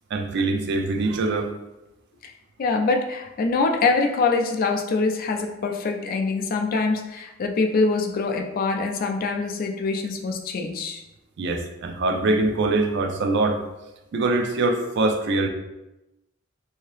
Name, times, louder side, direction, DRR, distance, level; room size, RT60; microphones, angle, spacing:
voice 1, 0.1-1.5 11.4-13.6 14.1-15.5, right 2 dB, 60° right, 5 dB, 0.4 m, -23 dB
voice 2, 2.6-11.0, left 3 dB, 45° left, 3 dB, 0.3 m, -24 dB
2.7 x 2.7 x 3.2 m, 0.97 s
head